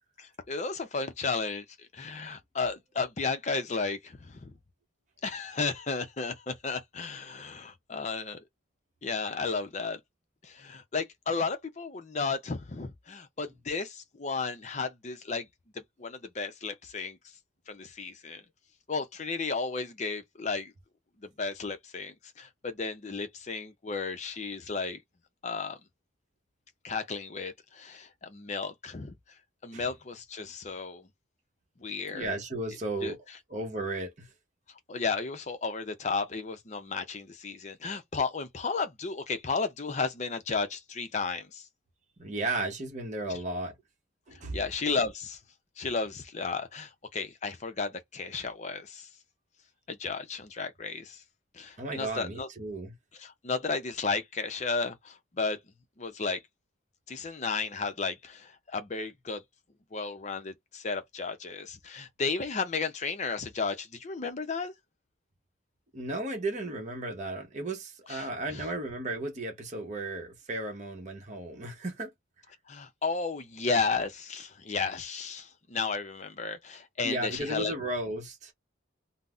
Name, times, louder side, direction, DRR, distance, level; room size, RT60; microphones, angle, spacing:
voice 1, 0.2-4.5 5.2-8.4 9.0-10.0 10.4-15.5 15.7-17.2 17.7-18.4 18.9-20.7 21.2-25.0 25.4-25.8 26.8-29.2 29.6-31.1 31.8-32.3 33.0-33.2 34.9-41.7 44.5-45.4 45.8-49.1 49.9-51.2 51.5-52.5 53.2-55.6 56.0-56.4 57.1-59.4 59.9-64.7 68.1-68.6 72.7-77.7, left 4 dB, 35° left, 0.5 m, -33 dB
voice 2, 32.1-33.2 33.5-34.3 42.2-43.7 44.3-44.6 51.8-52.9 65.9-72.1 77.0-78.5, right 2 dB, 35° right, 0.9 m, -34 dB
3.8 x 2.0 x 2.4 m
head